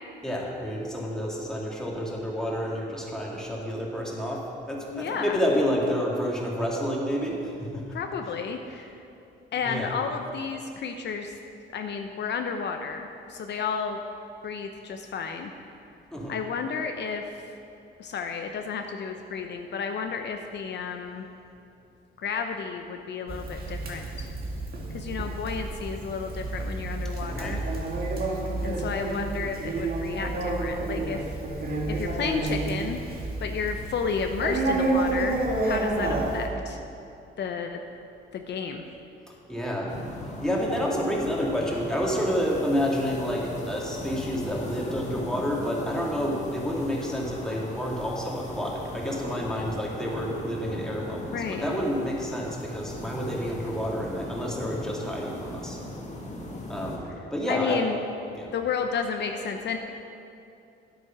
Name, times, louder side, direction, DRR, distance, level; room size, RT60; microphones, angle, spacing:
voice 1, 0.2-8.0 8.3-8.4 9.5-10.0 16.1-16.4 27.3-27.6 39.5-39.9 40.2-55.8 56.7-57.8 58.3-58.5, equal, 5° left, -3 dB, 2.4 m, -29 dB
voice 2, 4.9-5.4 7.9-9.0 9.5-11.3 11.7-14.0 14.4-15.5 16.3-17.2 18.0-21.3 22.2-24.3 24.9-27.6 28.6-31.3 31.9-33.0 33.4-36.8 37.4-37.8 38.3-38.9 51.3-51.7 57.5-58.0 58.5-59.8, left 6 dB, 60° left, 5 dB, 0.7 m, -32 dB
Conversation, 23.3-36.5, right 2 dB, 50° right, 2.0 m, -30 dB
sound 1, 39.9-57.0, left 1 dB, 35° left, 2.0 m, -38 dB
10.5 x 8.1 x 6.0 m, 2.7 s
cardioid pair, 90°, 20 cm